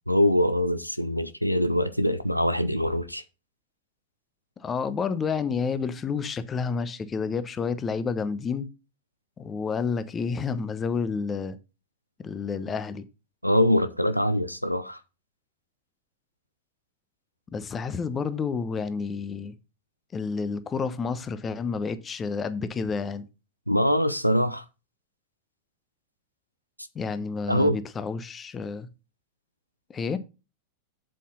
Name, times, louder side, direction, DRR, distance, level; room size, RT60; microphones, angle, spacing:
voice 1, 0.1-3.2 13.4-15.0 23.7-24.6 27.5-27.8, equal, 90° left, 0.6 m, -23 dB
voice 2, 4.6-8.7 9.4-11.6 12.2-13.0 17.5-19.5 20.1-23.3 26.9-28.9 29.9-30.2, left 5 dB, 20° left, 1.0 m, -30 dB
7.6 x 7.6 x 4.0 m
figure-of-eight pair, 90°, 0 cm